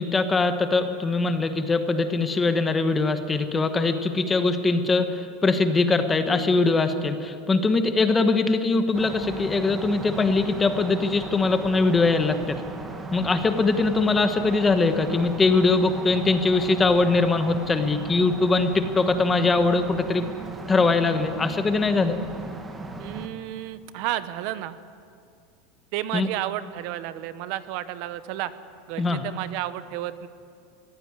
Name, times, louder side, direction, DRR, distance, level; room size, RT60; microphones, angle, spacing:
voice 1, 0.0-12.6 13.1-20.3 20.7-22.2 26.1-26.3 29.0-29.2, left 3 dB, 15° left, 8 dB, 1.3 m, -22 dB
sound 1, 8.9-23.3, right 3 dB, 15° right, 1.7 m, -37 dB
voice 2, 23.0-24.7 25.9-28.5 28.9-30.3, right 13 dB, 55° right, 14 dB, 0.9 m, -32 dB
22.0 x 15.5 x 9.8 m, 2.4 s
supercardioid pair, 155°, 0 cm